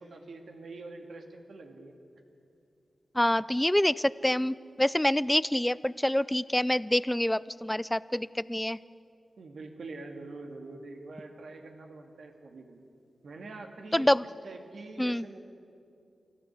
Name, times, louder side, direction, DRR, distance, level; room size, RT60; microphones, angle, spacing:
voice 1, 0.0-2.0 9.4-12.8 13.2-15.4, right 3 dB, 80° right, 3 dB, 2.2 m, -45 dB
voice 2, 3.1-8.8 13.9-14.2 15.0-15.3, left 1 dB, 10° left, 19 dB, 0.4 m, -26 dB
24.5 x 14.0 x 8.3 m, 2.6 s
cardioid pair, 70°, 0 cm